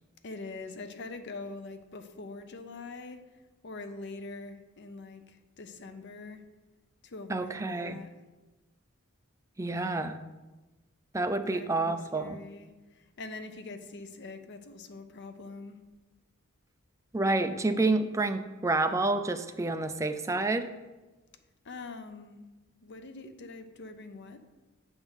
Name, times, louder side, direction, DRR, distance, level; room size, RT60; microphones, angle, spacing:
voice 1, 0.2-3.3 3.6-6.4 7.0-8.2 9.7-10.1 11.4-15.8 21.6-22.4 22.8-24.4, left 3 dB, 55° left, 8 dB, 0.6 m, -44 dB
voice 2, 7.3-8.0 9.6-10.2 11.1-12.4 17.1-20.7, right 2 dB, 15° right, 8 dB, 0.4 m, -29 dB
7.8 x 3.6 x 6.3 m, 1.1 s
head